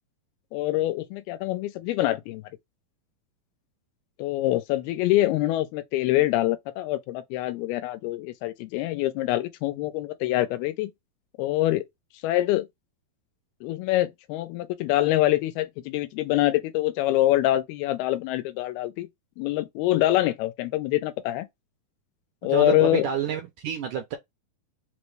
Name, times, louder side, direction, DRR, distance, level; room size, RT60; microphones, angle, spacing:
voice 1, 0.5-2.4 4.2-10.9 11.4-11.8 12.2-12.7 13.6-19.1 19.4-21.5 22.4-23.1, left 15 dB, 90° left, 2.5 m, -25 dB
voice 2, 22.4-24.2, right 8 dB, 80° right, 1.8 m, -29 dB
5.8 x 2.0 x 3.2 m
omnidirectional pair, 4.3 m